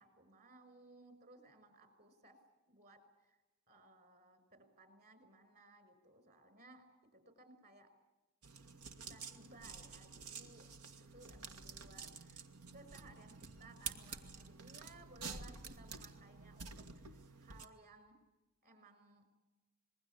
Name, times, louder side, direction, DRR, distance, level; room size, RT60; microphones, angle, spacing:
voice 1, 0.0-2.4 2.7-3.4 3.7-6.9 7.1-7.9 8.9-10.7 11.0-12.4 12.7-18.2 18.6-19.3, right 2 dB, 45° right, 10 dB, 5.7 m, -61 dB
sound 1, 8.4-17.7, right 5 dB, 85° right, 1.9 m, -50 dB
27.0 x 21.5 x 8.4 m, 1.1 s
head